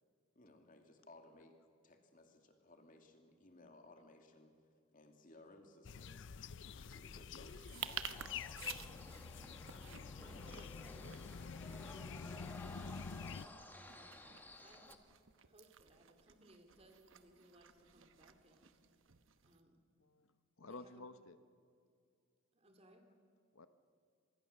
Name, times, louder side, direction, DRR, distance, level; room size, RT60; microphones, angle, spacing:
voice 1, 0.3-1.5 1.8-4.5 4.9-6.2 6.7-8.2, left 2 dB, 40° left, 4 dB, 2.4 m, -61 dB
sound 1, 5.8-13.5, left 6 dB, 55° left, 0.5 m, -48 dB
voice 2, 6.6-7.5 20.0-21.4 23.5-23.7, left 3 dB, 75° left, 11 dB, 0.9 m, -54 dB
sound 2, 7.5-19.6, right 9 dB, 65° right, 1.0 m, -53 dB
sound 3, 8.1-14.9, left 1 dB, 10° left, 1.4 m, -55 dB
voice 3, 10.2-11.5 11.8-12.9 13.4-15.0 15.4-19.0 19.4-19.8 20.6-21.0 22.5-23.1, right 1 dB, 30° right, 5 dB, 2.6 m, -65 dB
26.0 x 20.5 x 6.7 m, 2.4 s
head